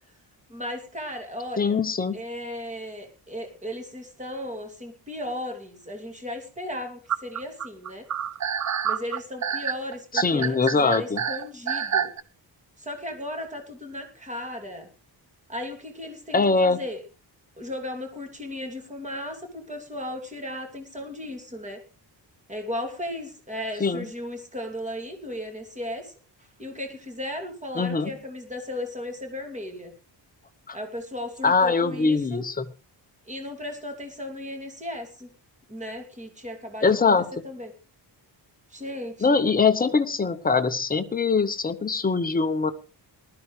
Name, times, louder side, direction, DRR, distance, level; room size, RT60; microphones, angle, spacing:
voice 1, 0.5-1.8 2.1-8.1 8.8-12.1 12.8-14.9 15.5-17.0 17.6-21.8 22.5-29.9 30.7-32.4 33.3-35.3 35.7-36.9 37.4-37.7 38.7-39.4, left 1 dB, 15° right, 4 dB, 2.5 m, -36 dB
voice 2, 1.6-2.2 10.1-11.2 16.3-16.8 23.8-24.0 27.8-28.1 30.7-30.8 31.4-32.7 36.8-37.3 39.2-42.7, left 4 dB, 20° left, 8 dB, 0.8 m, -22 dB
sound 1, 7.1-12.2, right 8 dB, 40° right, 0.7 m, -27 dB
19.5 x 12.5 x 3.2 m, 0.33 s
wide cardioid pair, 175°, 44 cm